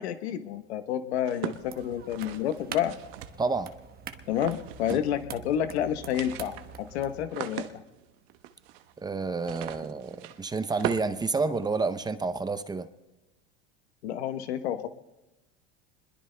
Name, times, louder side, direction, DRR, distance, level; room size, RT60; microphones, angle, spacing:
voice 1, 0.0-2.9 4.3-7.8 14.0-14.9, left 10 dB, 90° left, 9 dB, 1.1 m, -30 dB
sound 1, 1.2-3.7 4.3-5.2 5.5-5.6 5.9-12.0, right 12 dB, 70° right, 1.0 m, -40 dB
sound 2, 1.6-7.3, right 7 dB, 30° right, 1.1 m, -45 dB
voice 2, 3.4-3.7 4.9-5.0 9.0-12.9, right 4 dB, 15° right, 12 dB, 0.6 m, -29 dB
26.5 x 21.0 x 2.2 m, 1.1 s
supercardioid pair, 125°, 32 cm